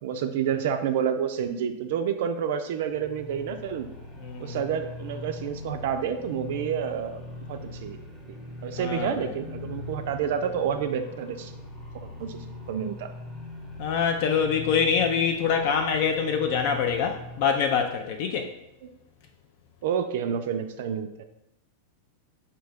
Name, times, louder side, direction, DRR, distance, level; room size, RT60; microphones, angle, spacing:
voice 1, 0.0-3.9 4.4-7.2 7.5-8.0 8.3-11.5 11.9-13.1 18.8-18.9 19.8-21.2, right 8 dB, 55° right, 7 dB, 0.3 m, -29 dB
sound 1, 2.8-17.6, left 2 dB, 20° left, 1.0 m, -41 dB
voice 2, 4.2-4.6 8.8-9.1 13.8-18.5, left 6 dB, 50° left, 5 dB, 0.3 m, -25 dB
5.2 x 2.7 x 3.4 m, 0.86 s
figure-of-eight pair, 90°, 0 cm